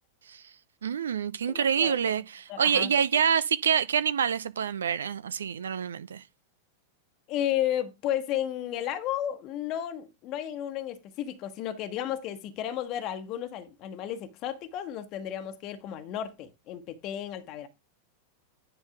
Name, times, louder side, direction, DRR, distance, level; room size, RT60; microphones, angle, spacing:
voice 1, 0.8-6.2, right 7 dB, 65° right, 0.5 m, -26 dB
voice 2, 1.5-1.9 2.5-2.9 7.3-17.7, left 11 dB, 40° left, 1.2 m, -33 dB
10.5 x 3.9 x 5.0 m
figure-of-eight pair, 90°, 0 cm